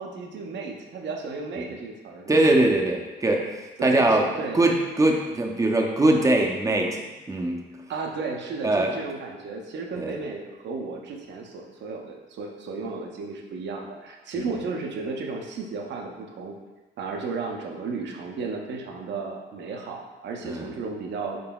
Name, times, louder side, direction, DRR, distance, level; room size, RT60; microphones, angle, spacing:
voice 1, 0.0-2.5 3.8-4.6 7.9-16.6 17.0-21.4, right 4 dB, 65° right, 2 dB, 0.6 m, -34 dB
voice 2, 2.3-3.4 3.8-4.3 4.5-7.0 7.3-7.6 8.6-8.9 10.0-10.1 20.4-20.7, right 2 dB, 15° right, 1 dB, 0.5 m, -21 dB
3.8 x 3.7 x 2.2 m, 1.2 s
cardioid pair, 90°, 20 cm